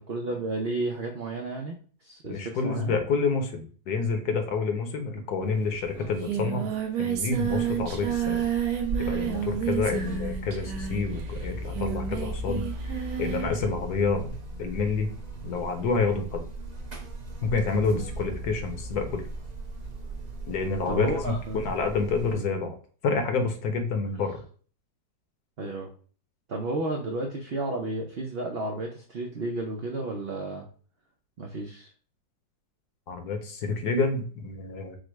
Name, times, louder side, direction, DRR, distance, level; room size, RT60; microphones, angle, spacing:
voice 1, 0.0-2.9 17.7-18.0 20.9-21.6 25.6-25.9 26.5-30.6 31.4-31.9, right 2 dB, 90° right, 1 dB, 0.5 m, -32 dB
voice 2, 2.3-6.7 7.0-8.4 9.0-15.1 15.4-16.4 17.4-19.2 20.5-22.7 23.0-24.4 33.1-35.0, left 4 dB, 65° left, 6 dB, 1.2 m, -28 dB
Singing, 5.5-5.6 5.8-13.6, right 8 dB, 65° right, 1.2 m, -30 dB
Buzz, 7.3-22.3, right 1 dB, 35° right, 0.6 m, -38 dB
5.1 x 2.1 x 4.5 m, 0.42 s
omnidirectional pair, 2.0 m